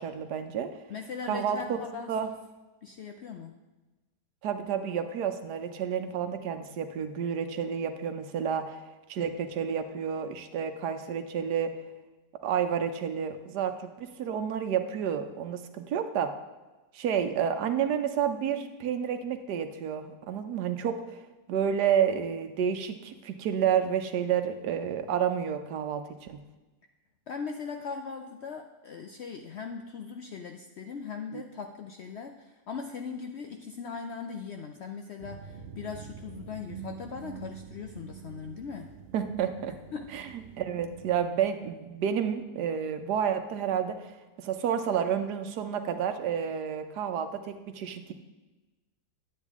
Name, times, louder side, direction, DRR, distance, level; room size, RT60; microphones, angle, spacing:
voice 1, 0.0-0.7 1.3-1.8 2.1-2.3 4.4-8.8 9.1-11.7 12.4-16.3 16.9-21.2 21.5-26.4 31.3-31.4 39.1-39.7 40.1-40.3 40.6-44.1 44.4-48.1, right 8 dB, 85° right, 8 dB, 1.4 m, -30 dB
voice 2, 0.9-2.1 2.8-3.6 27.3-38.9 39.9-40.1, left 5 dB, 70° left, 4 dB, 0.6 m, -39 dB
sound 1, 35.2-41.2, right 6 dB, 70° right, 0.5 m, -46 dB
10.0 x 8.9 x 3.6 m, 1.2 s
omnidirectional pair, 1.7 m